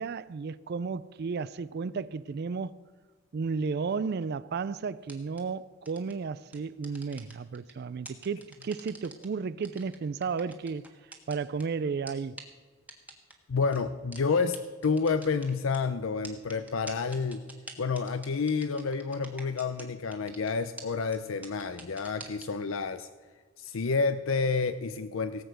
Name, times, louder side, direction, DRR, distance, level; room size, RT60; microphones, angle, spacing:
voice 1, 0.0-2.8 3.3-10.9 11.3-12.4, right 5 dB, 50° right, 0.4 m, -33 dB
sound 1, 5.0-5.4 5.9-6.1 6.5-7.7 8.1-9.3 9.6-11.6 12.1-12.2 12.4-12.5 12.9-13.3 13.7-13.8 14.1-14.2 14.5-14.6 14.8-15.8 16.2-19.9 20.1-20.5 20.8-20.9 21.1-21.2 21.4-22.5, right 2 dB, 5° right, 1.5 m, -45 dB
voice 2, 13.5-17.4 17.8-23.1 23.6-25.4, left 4 dB, 70° left, 0.6 m, -29 dB
18.0 x 8.0 x 6.4 m
head